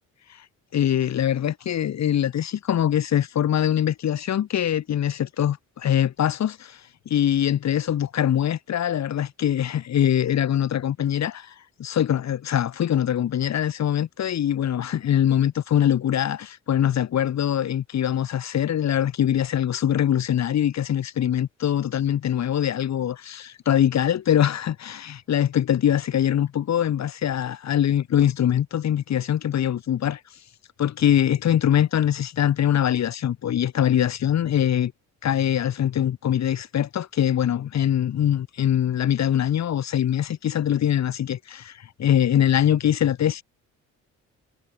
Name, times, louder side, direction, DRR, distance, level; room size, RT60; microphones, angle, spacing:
voice 1, 0.7-30.2 30.8-34.9 35.2-43.4, left 10 dB, 65° left, 3.2 m, -23 dB
cardioid pair, 90°, 30 cm